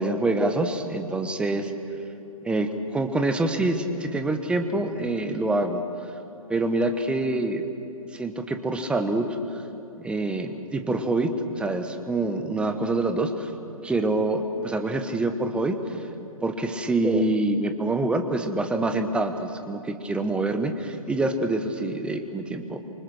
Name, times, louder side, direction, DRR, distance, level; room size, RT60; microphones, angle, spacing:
voice 1, 0.0-1.7 2.4-5.8 6.5-7.6 8.1-9.6 10.0-13.5 13.8-15.8 16.4-22.8, right 2 dB, 5° right, 7 dB, 1.2 m, -26 dB
27.0 x 25.0 x 6.6 m, 2.8 s
figure-of-eight pair, 125°, 18 cm